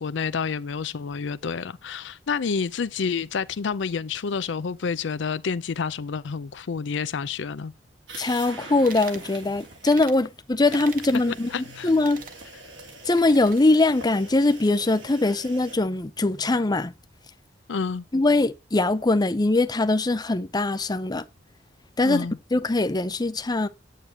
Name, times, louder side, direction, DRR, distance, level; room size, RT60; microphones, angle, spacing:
voice 1, 0.0-7.7 11.5-11.9 17.7-18.1 22.0-22.4, left 5 dB, 70° left, 0.5 m, -29 dB
sound 1, 8.1-10.0 10.6-15.8, right 2 dB, 70° right, 3.0 m, -43 dB
voice 2, 8.2-11.5 11.8-12.2 13.1-16.9 18.1-21.2 22.0-23.7, left 2 dB, 20° left, 0.6 m, -22 dB
sound 2, 8.8-9.3 9.9-10.2 10.7-11.2 11.9-12.4 13.1-13.6, right 6 dB, 50° right, 1.2 m, -42 dB
9.2 x 8.1 x 2.9 m
head